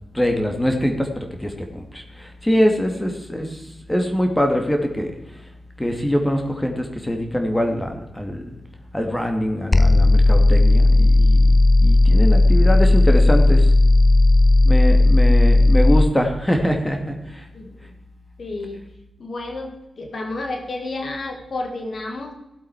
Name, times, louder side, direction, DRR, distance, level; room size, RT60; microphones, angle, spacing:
voice 1, 0.1-5.2 5.8-8.6 8.9-13.7 14.6-17.5, equal, 15° left, 4 dB, 2.2 m, -23 dB
sound 1, 9.7-16.1, left 2 dB, 30° left, 0.6 m, -14 dB
voice 2, 17.5-17.9 18.4-18.8 19.2-22.3, left 2 dB, 60° left, 4 dB, 1.8 m, -31 dB
16.5 x 7.9 x 4.8 m, 0.91 s
cardioid pair, 50°, 0 cm